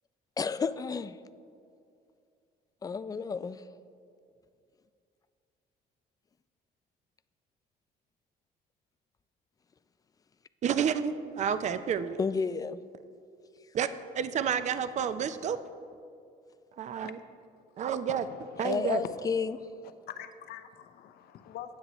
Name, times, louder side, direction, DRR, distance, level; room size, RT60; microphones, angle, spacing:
voice 1, 0.4-1.1 2.8-3.6 12.2-12.8 18.6-19.6, left 5 dB, 20° left, 14 dB, 0.4 m, -31 dB
voice 2, 10.6-12.2 13.7-13.9 14.1-15.6 16.7-17.2 17.8-18.3 18.6-19.0, right 8 dB, 45° right, 12 dB, 0.5 m, -30 dB
voice 3, 18.3-18.7 20.1-21.8, left 10 dB, 70° left, 10 dB, 0.7 m, -45 dB
19.0 x 7.6 x 3.1 m, 2.4 s
cardioid pair, 110°, 17 cm